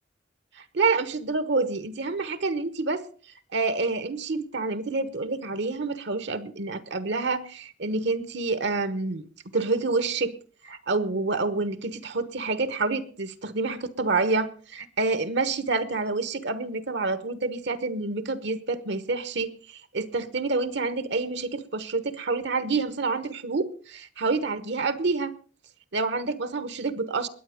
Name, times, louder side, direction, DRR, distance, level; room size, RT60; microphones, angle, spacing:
voice 1, 0.6-3.1 3.5-9.2 9.5-10.3 10.6-25.3 25.9-27.3, right 3 dB, 65° right, 1.1 m, -28 dB
21.0 x 8.6 x 5.1 m
head